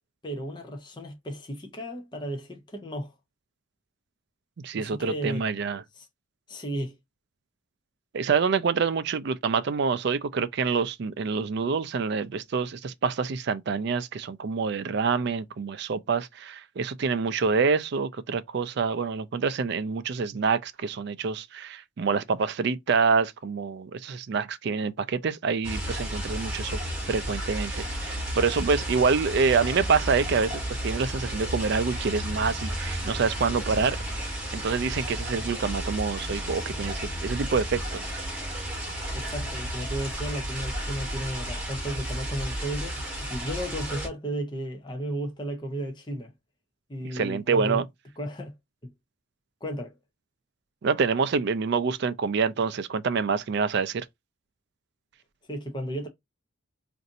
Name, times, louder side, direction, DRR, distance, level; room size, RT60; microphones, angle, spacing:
voice 1, 0.2-3.1 4.8-5.4 5.9-6.1 6.5-6.9 39.1-46.3 46.9-47.8 48.2-48.5 48.8-48.9 49.6-50.0 55.5-56.1, equal, 20° left, 0.6 m, -34 dB
voice 2, 4.6-5.8 8.1-26.8 27.1-34.0 34.5-38.0 47.1-47.9 50.8-54.1, right 5 dB, 55° right, 0.4 m, -26 dB
sound 1, 25.6-44.1, equal, 5° right, 1.5 m, -33 dB
4.0 x 2.5 x 2.5 m
head